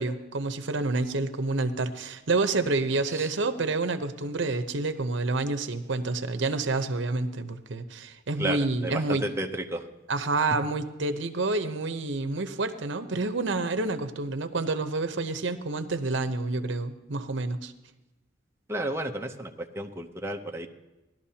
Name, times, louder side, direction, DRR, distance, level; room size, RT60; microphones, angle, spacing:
voice 1, 0.0-9.2 10.1-17.7, right 3 dB, 70° right, 9 dB, 0.8 m, -28 dB
voice 2, 8.4-9.9 10.4-10.5 18.7-20.7, right 1 dB, 15° right, 3 dB, 0.7 m, -32 dB
18.5 x 12.0 x 2.9 m, 0.99 s
head